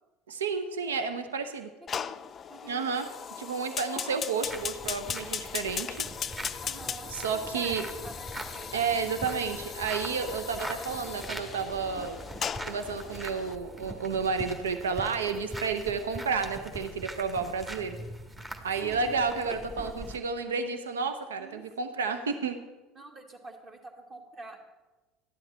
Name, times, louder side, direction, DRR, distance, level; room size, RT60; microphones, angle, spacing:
voice 1, 0.3-1.7 2.7-3.1 3.4-6.1 7.1-7.8 8.7-12.2 12.6-18.0 18.6-22.6, right 5 dB, 80° right, 9 dB, 0.8 m, -31 dB
voice 2, 1.8-2.2 2.5-2.9 6.6-8.8 15.9-16.1 18.8-19.2 21.4-21.7 22.9-24.7, right 2 dB, 35° right, 2 dB, 2.4 m, -47 dB
Fire, 1.9-13.6, left 7 dB, 35° left, 0.4 m, -38 dB
sound 1, 4.5-20.2, right 1 dB, 20° right, 1.5 m, -42 dB
13.0 x 10.5 x 4.3 m, 1.1 s
figure-of-eight pair, 70°, 0 cm